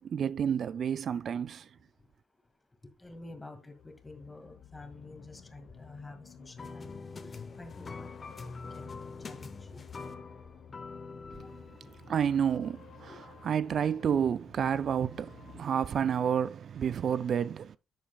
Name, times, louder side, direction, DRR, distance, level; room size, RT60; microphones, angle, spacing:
voice 1, 0.0-1.7 12.1-13.1 13.4-17.8, right 8 dB, 55° right, 0.3 m, -30 dB
voice 2, 3.0-7.3 7.6-9.8 11.8-12.2 13.1-13.2, left 2 dB, 15° left, 1.9 m, -49 dB
sound 1, 3.3-15.6, left 7 dB, 65° left, 1.1 m, -53 dB
sound 2, 6.6-12.1, left 4 dB, 35° left, 0.9 m, -44 dB
10.5 x 7.0 x 2.3 m
cardioid pair, 90°, 0 cm